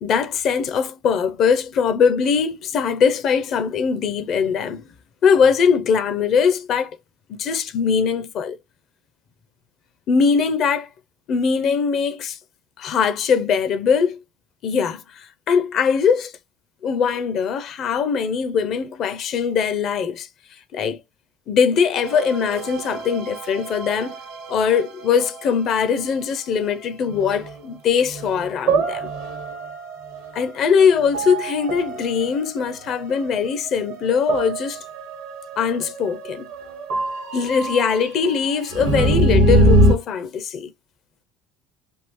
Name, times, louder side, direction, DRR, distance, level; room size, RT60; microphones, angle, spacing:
voice 1, 0.0-4.8 5.2-7.0 7.4-8.6 10.1-10.9 11.3-12.4 12.8-14.2 14.6-16.3 16.8-20.3 20.7-21.0 21.5-24.1 24.5-29.1 30.3-34.8 35.6-36.5 37.3-40.7, left 6 dB, 50° left, 0.5 m, -21 dB
sound 1, 22.0-25.9 27.1-27.6 28.1-39.9, right 1 dB, 70° right, 1.0 m, -24 dB
3.5 x 2.4 x 3.0 m
hypercardioid pair, 65°, 0 cm